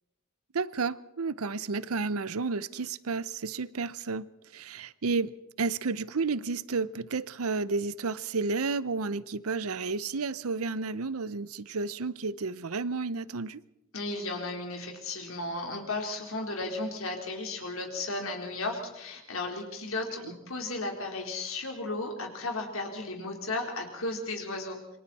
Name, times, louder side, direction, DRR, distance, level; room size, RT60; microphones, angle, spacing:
voice 1, 0.5-4.3 4.5-13.6, right 4 dB, 85° right, 0.7 m, -31 dB
voice 2, 13.9-25.0, left 2 dB, 70° left, 3.8 m, -34 dB
27.5 x 24.0 x 4.2 m
head